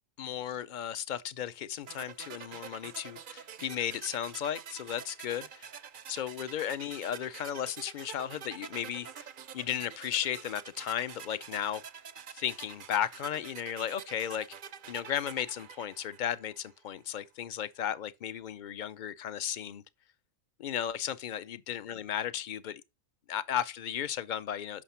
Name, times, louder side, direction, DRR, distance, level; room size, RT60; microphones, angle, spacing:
voice 1, 0.2-5.7 6.1-9.3 9.5-11.8 12.3-14.5 14.9-19.8 20.6-22.8 23.3-24.8, left 10 dB, 55° left, 0.5 m, -35 dB
sound 1, 1.9-16.8, right 8 dB, 55° right, 0.6 m, -47 dB
7.4 x 5.8 x 5.6 m
omnidirectional pair, 1.4 m